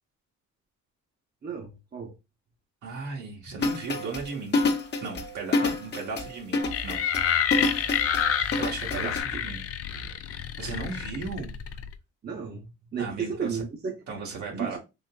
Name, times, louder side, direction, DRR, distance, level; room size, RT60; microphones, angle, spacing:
voice 1, 1.4-2.1 8.9-9.2 12.2-13.9 14.5-14.8, right 6 dB, 35° right, 0.7 m, -33 dB
voice 2, 2.8-4.6 5.0-7.0 8.6-9.6 10.6-11.5 13.0-13.6 14.1-14.8, right 4 dB, 75° right, 1.2 m, -36 dB
sound 1, 3.6-9.2, left 3 dB, 35° left, 0.8 m, -28 dB
sound 2, 6.7-11.9, left 8 dB, 50° left, 0.4 m, -28 dB
3.6 x 2.7 x 2.2 m
cardioid pair, 90°, 30 cm